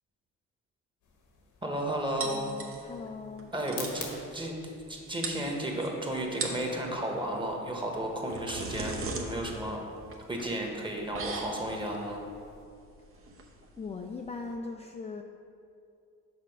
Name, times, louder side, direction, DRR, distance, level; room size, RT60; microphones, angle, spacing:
sound 1, 1.0-12.6, left 5 dB, 85° left, 1.3 m, -51 dB
voice 1, 1.6-2.4 3.5-4.1 4.3-4.6 4.9-9.8 10.3-12.2, right 1 dB, 15° right, 0 dB, 1.2 m, -33 dB
voice 2, 2.2-3.5 13.8-15.2, left 4 dB, 20° left, 2 dB, 0.4 m, -40 dB
sound 2, 2.2-3.1 3.4-3.5 3.7-4.0 4.9-5.0 5.2-5.9 6.3-6.7 7.9-14.5, right 3 dB, 45° right, 0.9 m, -39 dB
6.0 x 4.3 x 5.8 m, 2.5 s
cardioid pair, 90°, 30 cm